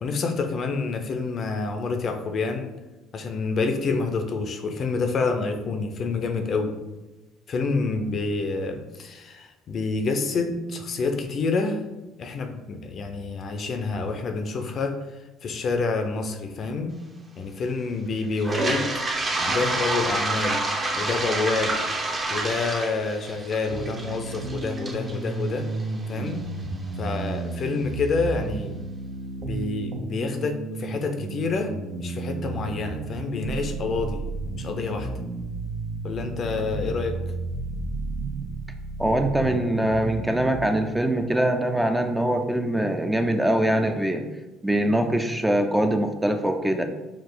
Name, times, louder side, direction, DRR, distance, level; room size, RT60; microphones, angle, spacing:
voice 1, 0.0-2.7 3.1-6.7 7.5-11.8 12.2-15.0 15.4-17.0 17.4-18.9 19.4-20.6 21.0-21.8 22.3-25.7 26.1-26.4 27.0-28.7 29.4-34.2 34.5-35.1 36.0-37.2, left 4 dB, 50° left, 6 dB, 0.5 m, -28 dB
Toilet flush, 18.4-26.3, right 2 dB, 30° right, 0.8 m, -28 dB
sound 1, 23.7-40.6, right 3 dB, 60° right, 0.7 m, -33 dB
voice 2, 39.0-44.2 44.6-46.8, right 1 dB, 10° right, 5 dB, 0.5 m, -23 dB
4.6 x 2.4 x 3.8 m, 1.1 s
supercardioid pair, 75°, 0 cm